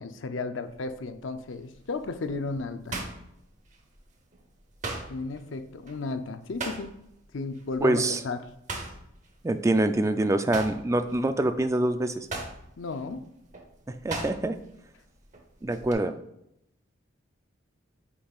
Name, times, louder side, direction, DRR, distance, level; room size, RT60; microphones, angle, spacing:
voice 1, 0.0-3.0 5.1-6.9 7.3-8.4 12.8-13.3, left 3 dB, 70° left, 9 dB, 0.5 m, -34 dB
sound 1, 0.6-1.0 1.5-4.0 4.3-7.2 7.5-7.8 8.1-10.1 10.4-14.7 15.0-15.9, right 3 dB, 35° right, 0.8 m, -38 dB
voice 2, 7.8-8.2 9.4-12.3 13.9-14.6 15.6-16.2, right 1 dB, 15° right, 9 dB, 0.3 m, -25 dB
8.4 x 5.5 x 2.4 m, 0.81 s
head